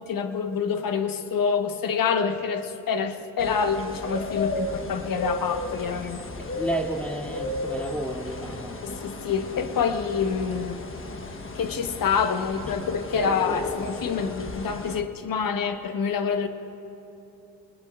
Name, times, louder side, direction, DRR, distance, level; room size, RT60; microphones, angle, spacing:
voice 1, 0.0-6.2 8.8-10.8 11.5-16.5, left 6 dB, 65° left, 8 dB, 1.2 m, -27 dB
sound 1, 3.4-15.0, left 2 dB, 35° left, 1.2 m, -34 dB
voice 2, 6.4-8.8, right 1 dB, 5° left, 0 dB, 2.6 m, -32 dB
25.0 x 20.5 x 2.5 m, 2.9 s
supercardioid pair, 50°, 37 cm